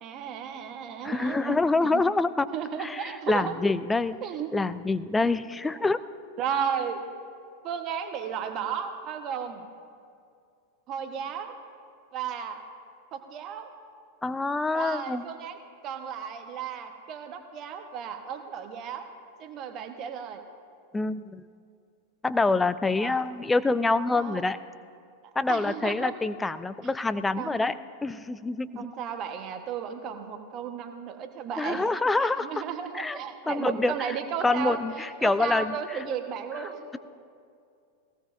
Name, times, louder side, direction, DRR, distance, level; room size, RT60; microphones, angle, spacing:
voice 1, 0.0-2.0 2.5-3.6 4.2-4.5 5.7-5.8 6.4-7.0 7.6-9.7 10.9-11.6 12.1-12.6 13.1-13.7 14.7-15.6 15.8-19.1 19.4-20.4 22.9-23.3 24.1-24.4 25.5-26.1 27.4-27.7 28.7-31.8 32.2-36.9, right 7 dB, 35° right, 6 dB, 1.1 m, -34 dB
voice 2, 1.0-2.5 2.8-4.2 4.5-6.0 14.2-15.2 20.9-21.4 22.2-24.6 25.4-27.7 28.0-28.9 31.6-32.5 32.9-33.2 33.5-33.9 34.4-36.0, left 3 dB, 10° left, 13 dB, 0.4 m, -26 dB
19.5 x 16.5 x 2.6 m, 2.4 s
figure-of-eight pair, 90°, 0 cm